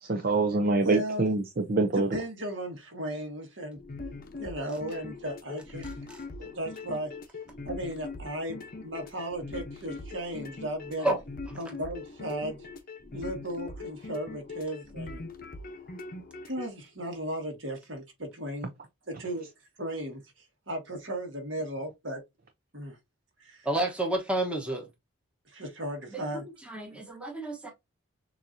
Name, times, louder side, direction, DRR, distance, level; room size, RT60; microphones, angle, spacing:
voice 1, 0.0-2.1, right 3 dB, 45° right, 0.6 m, -25 dB
voice 2, 0.8-1.3 1.9-3.8 4.4-5.9 6.4-7.1 7.6-11.1 11.5-12.6 13.1-15.2 16.4-18.7 19.1-19.5 19.8-20.2 20.7-22.2 22.7-23.0 23.4-23.7 25.5-26.4, right 1 dB, 60° right, 1.7 m, -36 dB
sound 1, 3.8-16.7, left 3 dB, 40° left, 0.8 m, -41 dB
voice 3, 23.6-24.9 26.1-26.2 26.7-27.7, right 1 dB, 5° right, 1.0 m, -30 dB
6.7 x 2.7 x 2.6 m
head